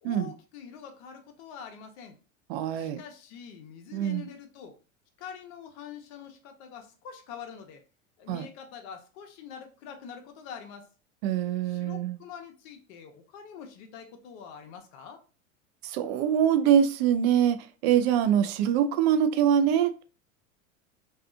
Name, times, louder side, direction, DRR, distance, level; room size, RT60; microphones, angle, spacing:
voice 1, 0.0-2.2 2.7-4.8 5.2-7.8 8.2-10.9 11.6-15.2, left 7 dB, 55° left, 0.7 m, -45 dB
voice 2, 2.5-3.0 3.9-4.3 8.3-8.5 11.2-12.2 15.8-17.6 17.8-20.0, right 9 dB, 50° right, 0.5 m, -24 dB
2.6 x 2.4 x 2.3 m
hypercardioid pair, 100°, 40 cm